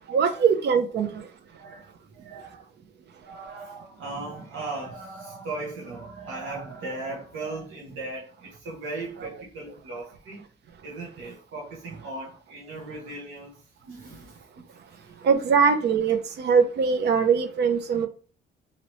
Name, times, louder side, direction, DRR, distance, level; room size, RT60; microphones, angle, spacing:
voice 1, 0.1-1.3 9.2-9.3 15.2-18.1, right 6 dB, 60° right, 0.6 m, -22 dB
voice 2, 1.6-2.6 3.2-10.4 10.8-15.3, right 3 dB, 90° right, 1.0 m, -38 dB
2.9 x 2.8 x 3.0 m
cardioid pair, 90°, 20 cm